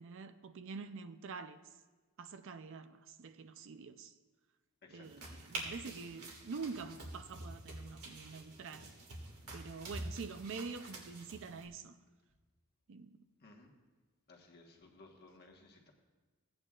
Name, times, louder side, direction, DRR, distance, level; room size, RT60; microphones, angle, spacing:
voice 1, 0.0-1.6 2.2-4.1 4.9-8.9 9.5-12.0 12.9-13.2, right 4 dB, 60° right, 0.5 m, -46 dB
voice 2, 4.8-5.4 13.4-13.7 14.3-15.9, left 2 dB, 45° left, 1.3 m, -59 dB
sound 1, 5.0-11.7, right 2 dB, 85° right, 2.1 m, -47 dB
16.0 x 8.8 x 2.4 m
head